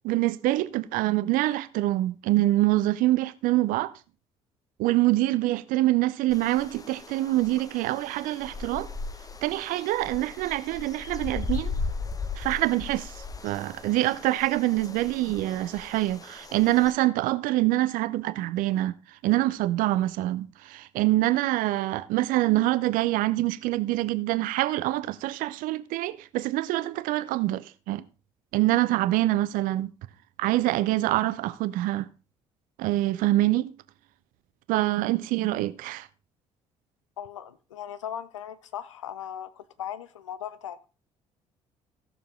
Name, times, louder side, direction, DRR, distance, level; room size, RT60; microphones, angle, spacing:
voice 1, 0.0-3.9 4.8-8.9 9.4-11.7 12.4-18.9 19.2-28.0 28.5-29.9 30.4-32.1 32.8-33.7 34.7-36.1, right 16 dB, 60° right, 0.7 m, -25 dB
sound 1, 6.3-16.9, left 4 dB, 25° left, 1.0 m, -37 dB
voice 2, 37.2-40.9, left 10 dB, 80° left, 0.6 m, -38 dB
16.0 x 6.8 x 3.7 m
figure-of-eight pair, 50°, 16 cm